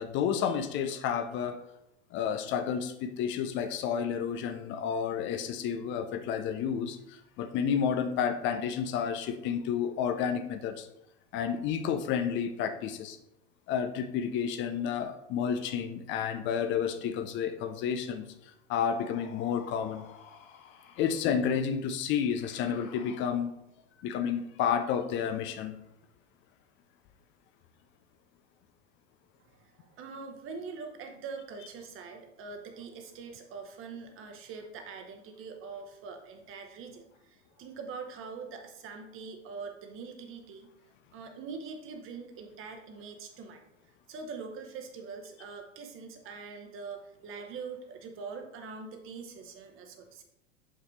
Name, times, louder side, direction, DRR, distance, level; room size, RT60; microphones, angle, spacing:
voice 1, 0.0-1.6 2.1-10.9 11.3-13.2 13.7-18.2 18.7-20.0 21.0-23.5 24.0-25.7, left 7 dB, 30° left, 9 dB, 0.5 m, -31 dB
sound 1, 18.9-21.4 22.0-23.7, left 7 dB, 50° left, 0.9 m, -53 dB
voice 2, 29.4-40.7 41.1-43.6 44.1-50.2, right 5 dB, 35° right, 5 dB, 1.1 m, -43 dB
6.4 x 5.5 x 3.2 m, 0.82 s
figure-of-eight pair, 85°, 37 cm